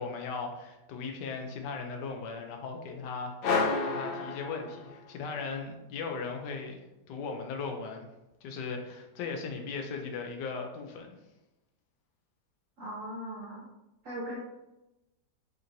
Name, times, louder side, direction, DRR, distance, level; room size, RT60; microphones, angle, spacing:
voice 1, 0.0-6.8 7.1-8.0 8.4-11.2, left 4 dB, 85° left, 3 dB, 1.2 m, -38 dB
sound 1, 3.4-5.2, left 4 dB, 65° left, 1.1 m, -30 dB
voice 2, 12.8-13.6 14.0-14.4, equal, 55° right, -7 dB, 1.4 m, -39 dB
4.9 x 3.0 x 2.6 m, 0.96 s
omnidirectional pair, 1.8 m